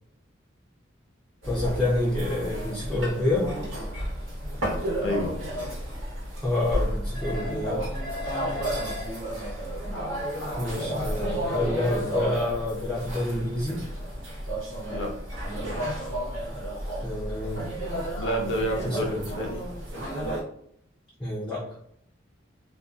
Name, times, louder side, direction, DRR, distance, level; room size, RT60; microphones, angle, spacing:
voice 1, 1.4-3.5 6.4-7.9 10.6-13.8 17.0-17.6 18.8-19.2 21.2-21.7, left 2 dB, 5° left, -7 dB, 0.5 m, -28 dB
sound 1, 1.4-20.4, right 1 dB, 85° right, 1.0 m, -32 dB
voice 2, 5.0-5.3 14.9-15.1 18.2-19.6, equal, 70° left, 0 dB, 0.7 m, -29 dB
2.6 x 2.3 x 2.4 m, 0.70 s
head